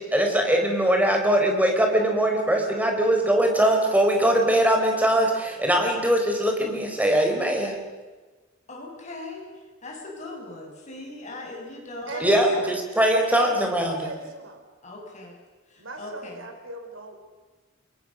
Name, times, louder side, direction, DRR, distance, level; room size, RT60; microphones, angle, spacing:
voice 1, 0.1-7.8 12.2-14.1, right 1 dB, 10° right, 2 dB, 4.5 m, -21 dB
voice 2, 8.7-12.6 13.4-13.5 14.8-15.4 15.7-16.5, left 2 dB, 35° left, 0 dB, 6.4 m, -39 dB
voice 3, 12.1-12.8 13.2-14.6 15.8-17.2, right 2 dB, 75° right, 5 dB, 4.6 m, -37 dB
29.0 x 22.5 x 6.4 m, 1.3 s
head